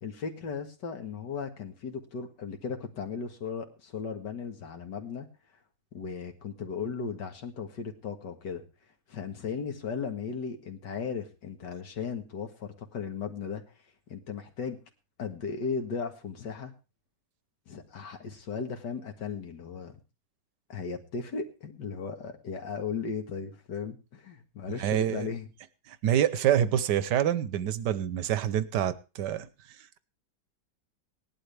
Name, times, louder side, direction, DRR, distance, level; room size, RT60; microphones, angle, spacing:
voice 1, 0.0-5.3 5.9-8.6 9.1-13.6 14.1-14.8 15.2-16.7 17.7-20.0 20.7-25.5, left 5 dB, 75° left, 2.3 m, -36 dB
voice 2, 24.8-25.3 25.9-29.5, right 10 dB, 75° right, 1.4 m, -26 dB
18.0 x 11.5 x 3.4 m
omnidirectional pair, 1.9 m